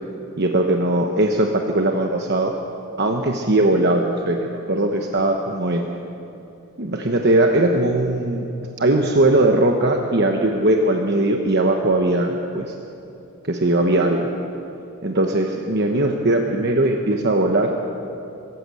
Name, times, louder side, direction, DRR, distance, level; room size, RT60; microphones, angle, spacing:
voice 1, 0.4-2.5 3.0-5.9 6.8-8.5 8.8-12.7 13.5-14.3 15.0-17.7, right 1 dB, 50° right, 3 dB, 1.1 m, -19 dB
24.5 x 14.0 x 7.7 m, 2.8 s
head